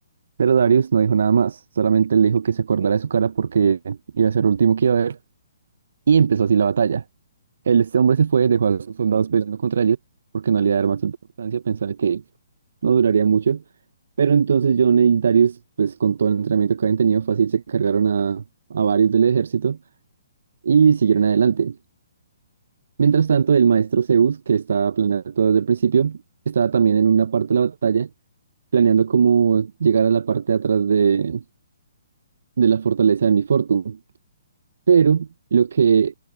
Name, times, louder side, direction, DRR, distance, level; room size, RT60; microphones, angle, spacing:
voice 1, 0.4-5.2 6.1-7.0 7.7-10.0 10.3-12.2 12.8-13.6 14.2-18.4 18.7-19.8 20.6-21.8 23.0-26.2 26.5-28.1 28.7-31.4 32.6-34.0 34.9-36.2, right 6 dB, 65° right, 0.5 m, -19 dB
figure-of-eight pair, 135°, 0 cm